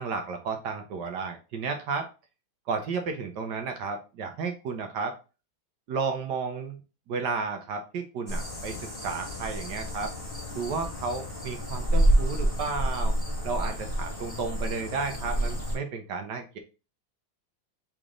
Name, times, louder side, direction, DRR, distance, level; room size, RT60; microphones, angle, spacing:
voice 1, 0.0-2.1 2.7-5.1 5.9-6.8 7.1-10.1 10.5-13.1 13.4-16.6, right 4 dB, 65° right, 5 dB, 1.3 m, -32 dB
sound 1, 8.3-15.7, right 1 dB, 10° left, 1.4 m, -28 dB
4.0 x 3.3 x 3.6 m, 0.32 s
omnidirectional pair, 2.2 m